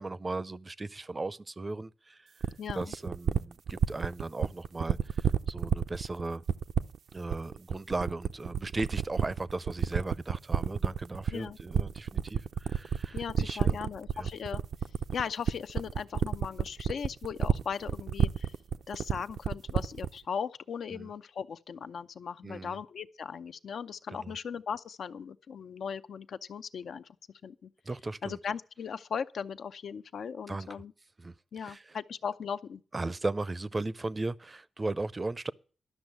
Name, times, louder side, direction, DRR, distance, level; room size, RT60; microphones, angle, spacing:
voice 1, 0.0-2.3 2.7-6.4 7.1-14.3 20.9-21.1 22.4-22.8 24.1-24.3 27.9-28.4 30.5-30.7 31.2-31.3 31.6-31.8 32.9-35.5, right 2 dB, 30° right, 0.5 m, -37 dB
sound 1, 2.4-20.2, right 8 dB, 75° right, 0.5 m, -29 dB
voice 2, 2.6-2.9 11.3-11.6 13.1-14.6 15.1-18.5 18.9-27.1 27.4-27.7 28.2-30.9 31.5-32.8, left 7 dB, 70° left, 0.6 m, -38 dB
12.0 x 6.3 x 9.1 m
cardioid pair, 80°, 0 cm